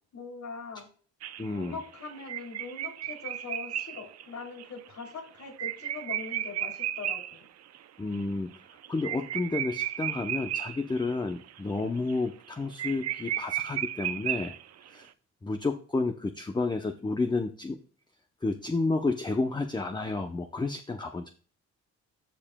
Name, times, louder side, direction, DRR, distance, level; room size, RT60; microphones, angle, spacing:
voice 1, 0.1-0.9 1.5-7.5, left 4 dB, 65° left, 1 dB, 3.1 m, -42 dB
sound 1, 1.2-7.4 7.7-7.8 8.1-8.2 8.5-11.1 11.5-11.8 12.1-12.2 12.5-12.6 12.8-14.9, right 11 dB, 60° right, 0.6 m, -34 dB
voice 2, 1.4-1.7 8.0-8.5 8.9-14.5 14.9-15.1 15.4-17.8 18.4-21.3, left 3 dB, 15° left, 5 dB, 0.7 m, -31 dB
14.5 x 4.9 x 2.2 m, 0.42 s
cardioid pair, 90°, 30 cm